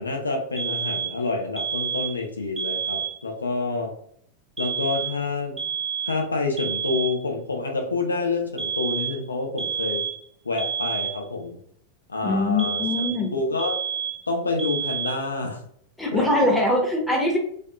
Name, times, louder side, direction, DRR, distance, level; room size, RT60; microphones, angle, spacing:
voice 1, 0.0-3.9 4.6-5.6 6.0-10.0 10.4-11.6 12.1-12.9 13.3-13.8 14.3-15.6 16.1-16.5, left 3 dB, 75° left, 2 dB, 0.5 m, -28 dB
sound 1, 0.6-1.2 1.6-2.2 2.6-3.2 4.6-5.2 5.6-6.2 6.6-7.2 8.6-9.2 9.6-10.2 10.6-11.2 12.6-13.3 13.6-14.3 14.6-15.3, right 7 dB, 15° right, 0.5 m, -29 dB
voice 2, 12.2-13.3 16.0-17.4, left 1 dB, 5° left, -2 dB, 0.9 m, -22 dB
3.4 x 2.5 x 2.3 m, 0.63 s
figure-of-eight pair, 90°, 0 cm